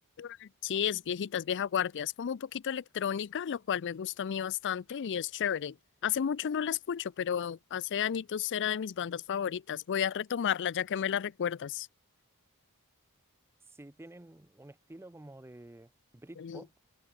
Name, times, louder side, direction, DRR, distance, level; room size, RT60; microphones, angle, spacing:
voice 1, 0.2-5.7 6.0-11.9 16.4-16.6, left 8 dB, 55° left, 0.4 m, -32 dB
voice 2, 13.7-16.7, right 1 dB, 10° right, 0.6 m, -50 dB
open air
head